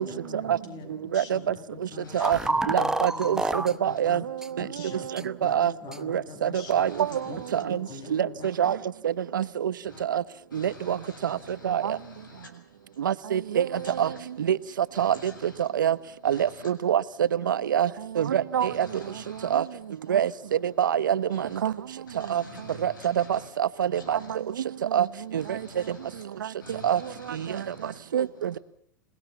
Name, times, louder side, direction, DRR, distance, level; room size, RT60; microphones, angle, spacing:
voice 1, 0.0-4.3 4.6-6.9 7.3-8.8, left 5 dB, 40° left, 6.9 m, -44 dB
voice 2, 2.0-2.5 3.9-4.0 5.4-5.5 6.7-7.6 9.8-10.0 10.5-12.5 13.7-14.2 14.9-15.7 16.2-16.7 18.6-19.6 21.3-21.6 22.1-23.5 23.9-24.3 25.4-26.2 26.6-28.0, left 2 dB, 90° left, 7.2 m, -47 dB
sound 1, 2.2-3.7 4.4-4.5 5.2-5.3 5.9-6.0, right 2 dB, 5° right, 0.9 m, -27 dB
voice 3, 2.7-3.4 3.8-4.2 5.4-5.7 6.1-6.9 7.5-7.8 8.1-8.3 8.6-8.8 9.3-9.7 10.1-10.2 10.5-11.0 11.6-12.0 13.0-13.7 14.0-14.1 14.5-14.6 15.0-15.1 15.6-15.9 16.2-17.0 17.5-17.9 18.2-18.9 19.5-19.6 20.1-20.3 20.8-21.7 22.3-22.4 22.8-22.9 23.3-24.2 24.9-25.1 25.3-25.4 26.8-27.0 28.1-28.6, right 9 dB, 85° right, 0.9 m, -24 dB
27.5 x 18.5 x 7.0 m
hypercardioid pair, 110°, 10 cm